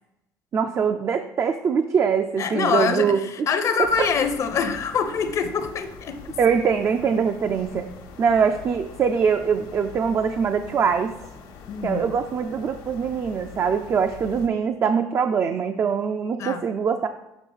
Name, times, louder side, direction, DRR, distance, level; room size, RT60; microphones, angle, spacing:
voice 1, 0.5-3.2 4.0-4.1 6.4-7.9 8.2-11.2 11.8-17.1, right 6 dB, 35° right, 7 dB, 0.4 m, -23 dB
voice 2, 2.4-6.4 11.7-12.1 16.4-16.6, left 6 dB, 45° left, 8 dB, 0.7 m, -25 dB
sound 1, 3.8-14.5, left 6 dB, 75° left, 1.1 m, -43 dB
7.2 x 3.2 x 5.5 m, 0.91 s
cardioid pair, 110°, 7 cm